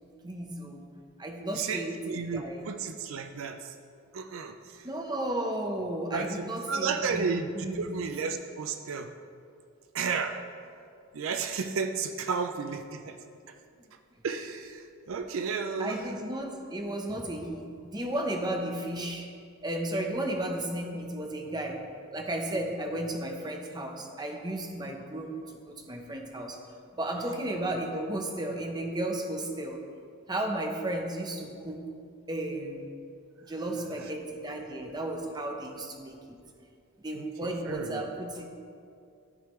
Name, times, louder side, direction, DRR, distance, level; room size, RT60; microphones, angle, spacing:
voice 1, 0.2-0.9 1.2-2.6 4.8-7.9 15.8-19.3 19.6-26.6 26.9-29.8 30.3-31.8 32.3-32.9 33.5-36.2 37.0-38.5, right 1 dB, 20° right, 2 dB, 0.7 m, -34 dB
voice 2, 1.6-3.7 4.1-4.8 6.1-9.1 9.9-10.4 11.1-13.2 14.2-16.0 37.1-38.0, right 5 dB, 70° right, 7 dB, 0.4 m, -33 dB
13.5 x 4.8 x 3.1 m, 2.3 s
head